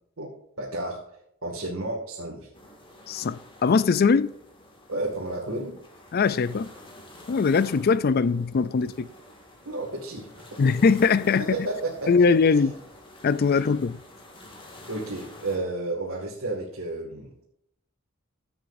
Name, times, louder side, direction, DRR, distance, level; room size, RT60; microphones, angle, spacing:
voice 1, 0.6-1.0 1.4-2.5 4.9-5.7 9.7-10.6 11.4-12.1 13.5-13.7 14.8-17.3, right 2 dB, 75° right, 2.1 m, -32 dB
sound 1, 2.5-15.6, left 1 dB, 25° left, 2.1 m, -49 dB
voice 2, 3.1-4.3 6.1-6.7 7.3-9.1 10.6-11.5 12.1-12.7 13.2-14.0, left 5 dB, 50° left, 0.4 m, -21 dB
14.0 x 8.0 x 2.6 m
head